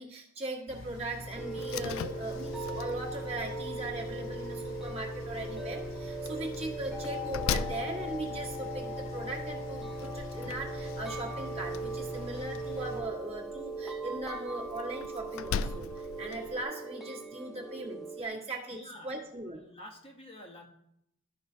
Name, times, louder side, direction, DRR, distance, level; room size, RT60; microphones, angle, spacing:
voice 1, 0.0-18.8 19.0-19.6, right 2 dB, 30° right, -2 dB, 1.5 m, -39 dB
sound 1, 0.7-13.0, left 1 dB, 90° left, 1.9 m, -43 dB
sound 2, 1.4-18.2, right 2 dB, ahead, 0.6 m, -39 dB
Slam, 1.6-16.6, left 6 dB, 70° left, 0.3 m, -42 dB
voice 2, 18.7-20.7, left 1 dB, 25° left, 1 dB, 1.0 m, -49 dB
13.0 x 5.5 x 2.7 m, 0.75 s
head